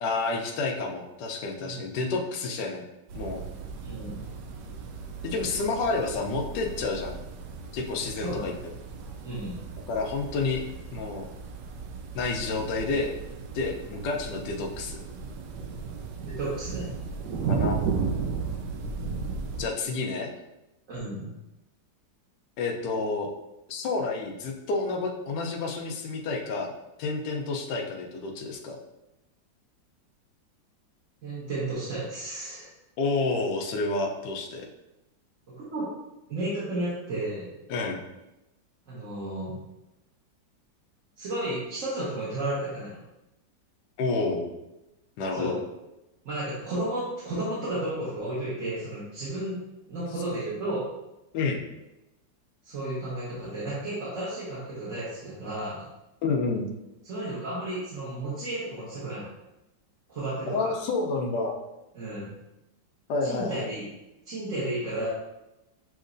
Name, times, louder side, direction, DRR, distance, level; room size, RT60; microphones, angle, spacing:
voice 1, 0.0-2.9 3.1-3.4 5.2-7.2 7.7-8.5 9.9-10.6 10.9-11.3 12.1-13.2 13.5-15.0 17.5-18.0 19.6-20.3 22.6-23.3 23.7-26.7 27.0-28.8 33.0-34.6 37.7-38.0 44.0-44.5 45.2-45.6 51.3-51.6 56.2-56.7 60.5-61.6 63.1-63.7, left 3 dB, 70° left, 1 dB, 1.2 m, -29 dB
sound 1, 3.1-19.7, right 5 dB, 70° right, 1.1 m, -35 dB
voice 2, 3.8-4.3 8.2-8.6 9.2-9.5 16.2-16.9 20.9-21.3 31.2-32.7 35.5-35.9 36.3-37.5 38.9-39.5 41.2-43.0 45.3-45.6 46.2-49.6 49.9-50.9 52.6-55.8 57.0-59.3 60.1-60.7 61.9-62.3 63.2-63.8 64.2-65.1, right 1 dB, 45° right, -10 dB, 1.5 m, -33 dB
7.1 x 2.8 x 2.6 m, 0.95 s
omnidirectional pair, 2.0 m